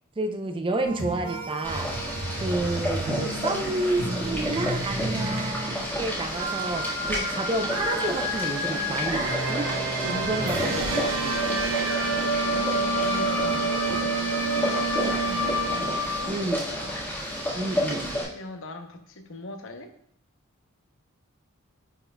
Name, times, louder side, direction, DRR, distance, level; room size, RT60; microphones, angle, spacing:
voice 1, 0.2-1.9 2.4-9.7 10.0-11.4 16.3-16.6 17.5-18.2, right 2 dB, 25° right, 6 dB, 0.4 m, -30 dB
sound 1, 0.8-16.3, right 2 dB, 80° right, 1.0 m, -29 dB
Boiling, 1.6-18.2, equal, 10° left, 1.5 m, -31 dB
voice 2, 10.0-10.7 11.9-19.9, left 2 dB, 65° left, 6 dB, 0.7 m, -41 dB
10.0 x 4.5 x 2.2 m, 0.67 s
head